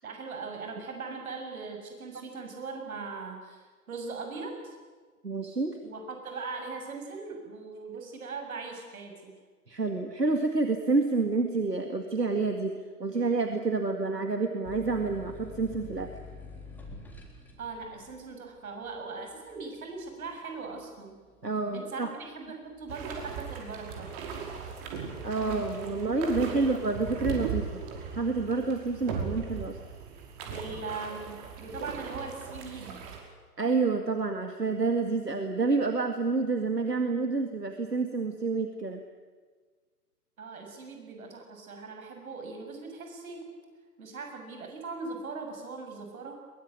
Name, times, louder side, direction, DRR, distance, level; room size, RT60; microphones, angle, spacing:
voice 1, 0.0-4.8 5.8-9.3 17.6-21.1 21.7-24.1 26.4-26.7 30.5-33.1 40.4-43.5 44.0-46.4, right 4 dB, 60° right, 3 dB, 7.2 m, -40 dB
voice 2, 5.2-5.8 9.7-16.1 21.4-22.1 25.2-27.8 28.1-29.8 33.6-39.0, right 3 dB, 85° right, 6 dB, 2.2 m, -28 dB
sound 1, 14.6-21.9 22.4-23.1, left 3 dB, 5° left, 3.7 m, -47 dB
sound 2, 22.9-33.2, right 6 dB, 35° right, 5.3 m, -38 dB
22.5 x 22.5 x 9.5 m, 1.5 s
figure-of-eight pair, 120°, 47 cm